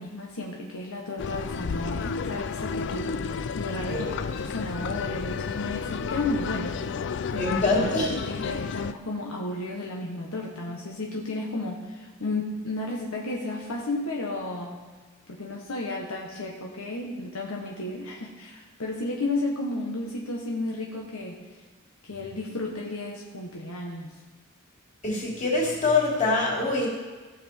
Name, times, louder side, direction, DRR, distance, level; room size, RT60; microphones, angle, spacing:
voice 1, 0.0-6.8 7.3-14.8 15.3-21.4 22.0-24.1, left 2 dB, 75° left, -1 dB, 1.4 m, -33 dB
sound 1, 1.2-8.9, left 5 dB, 55° left, 0.4 m, -32 dB
voice 2, 7.3-8.4 25.0-26.9, left 3 dB, 35° left, -4 dB, 3.5 m, -25 dB
17.5 x 7.0 x 4.5 m, 1.3 s
head